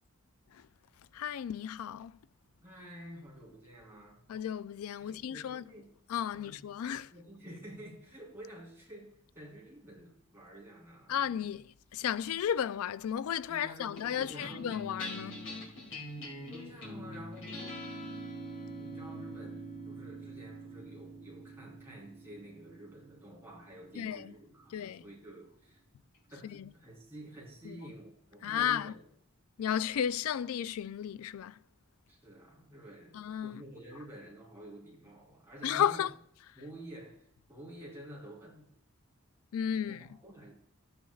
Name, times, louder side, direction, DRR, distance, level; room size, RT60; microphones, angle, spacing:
voice 1, 1.1-2.2 4.3-5.6 6.1-7.1 11.1-15.4 23.9-24.3 24.7-25.0 26.4-26.7 27.6-27.8 28.4-28.9 29.6-31.6 33.1-33.6 35.6-36.1 39.5-40.1, left 9 dB, 80° left, 0.3 m, -34 dB
voice 2, 2.6-4.2 5.0-5.9 6.3-6.5 7.1-11.2 13.5-14.8 16.5-17.8 18.7-25.8 26.3-29.0 32.1-36.1 36.6-38.7 39.8-40.5, right 1 dB, 10° right, 3.7 m, -50 dB
sound 1, 14.0-24.6, equal, 55° left, 2.5 m, -44 dB
13.5 x 9.4 x 2.3 m
head